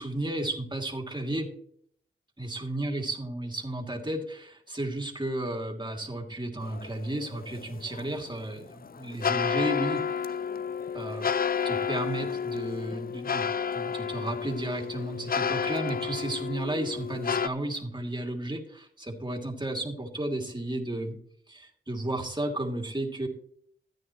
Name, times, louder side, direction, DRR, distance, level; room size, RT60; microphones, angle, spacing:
voice 1, 0.0-1.5 2.4-10.0 10.9-11.3 11.6-13.5 13.7-21.2 21.5-23.3, right 1 dB, 20° right, 1 dB, 2.6 m, -33 dB
sound 1, 6.6-17.5, left 7 dB, 45° left, 0.5 m, -31 dB
14.5 x 9.4 x 3.1 m, 0.63 s
cardioid pair, 45°, 21 cm